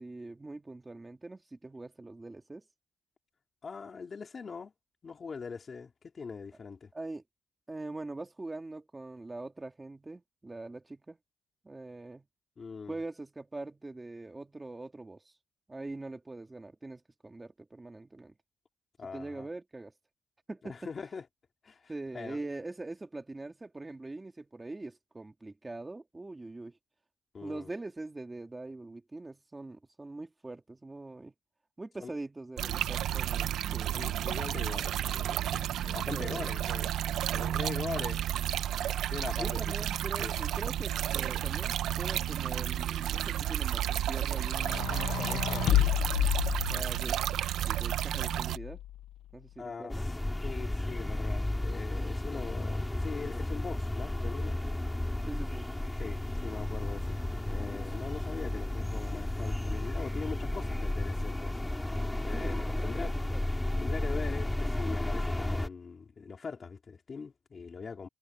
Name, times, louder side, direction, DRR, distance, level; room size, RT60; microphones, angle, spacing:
voice 1, 0.0-2.6 6.9-7.2 7.7-11.2 11.6-12.3 12.9-15.2 15.7-18.3 19.1-19.9 20.5-20.7 21.9-26.7 27.4-31.3 31.8-34.0 36.1-36.7 39.4-45.9 46.7-47.2 47.6-48.8 49.3-50.0 55.3-55.7 62.3-63.5, right 2 dB, 15° right, 2.4 m, -43 dB
voice 2, 3.6-4.7 5.0-6.9 12.6-12.9 19.0-19.5 20.7-21.2 21.6-22.4 27.3-27.7 32.0-32.1 33.9-36.9 37.3-38.2 39.1-39.6 40.2-40.3 49.6-50.1 50.4-54.6 56.0-57.2 57.5-63.1 63.8-68.1, left 5 dB, 30° left, 3.3 m, -42 dB
sound 1, 32.6-48.6, right 11 dB, 75° right, 0.9 m, -32 dB
sound 2, 44.5-47.2 48.1-49.1, left 13 dB, 90° left, 0.7 m, -30 dB
sound 3, 49.9-65.7, left 1 dB, 10° left, 2.5 m, -33 dB
cardioid pair, 165°, 0 cm